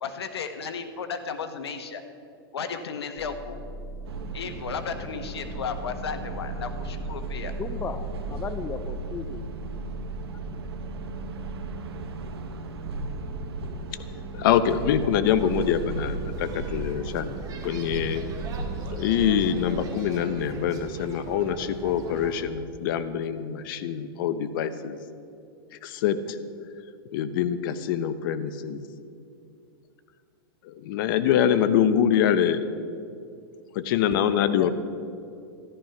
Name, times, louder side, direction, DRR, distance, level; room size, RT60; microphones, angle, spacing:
voice 1, 0.0-2.0 2.5-3.6 4.3-7.5, left 6 dB, 85° left, 8 dB, 1.3 m, -34 dB
sound 1, 3.2-20.1, right 3 dB, 5° right, 1.7 m, -42 dB
sound 2, 4.0-19.9, right 2 dB, 85° right, 1.5 m, -36 dB
voice 2, 7.6-9.5 34.1-34.7, left 6 dB, 15° left, 11 dB, 0.5 m, -36 dB
voice 3, 14.3-17.3 17.6-18.2 19.0-25.0 25.8-26.4 27.1-28.8 30.7-32.6 33.7-34.7, left 9 dB, 55° left, 11 dB, 0.9 m, -25 dB
sound 3, 15.3-22.4, right 3 dB, 30° right, 2.1 m, -40 dB
13.5 x 11.5 x 5.9 m, 2.5 s
hypercardioid pair, 135°, 13 cm